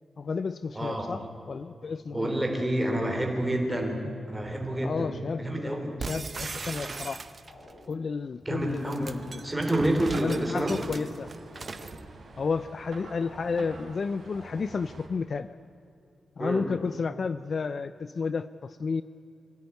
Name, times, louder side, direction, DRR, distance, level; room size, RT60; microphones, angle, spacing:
voice 1, 0.2-2.3 4.8-7.3 7.9-9.4 10.1-11.3 12.4-15.6 16.4-19.0, left 5 dB, 40° left, 14 dB, 0.5 m, -32 dB
voice 2, 0.7-1.1 2.1-5.1 5.4-5.9 8.5-9.1 9.4-10.9 16.4-16.7, right 1 dB, 10° right, 2 dB, 3.5 m, -28 dB
sound 1, 4.7-5.4 6.4-7.1 7.5-8.2 11.5-12.3 13.3-14.0 14.3-15.1, left 1 dB, 60° left, 6.8 m, -52 dB
sound 2, 6.0-7.7 8.7-12.0, right 4 dB, 30° right, 0.9 m, -38 dB
sound 3, 8.6-15.1, right 3 dB, 45° right, 3.8 m, -47 dB
24.5 x 16.0 x 9.4 m, 2.8 s
wide cardioid pair, 170°, 0 cm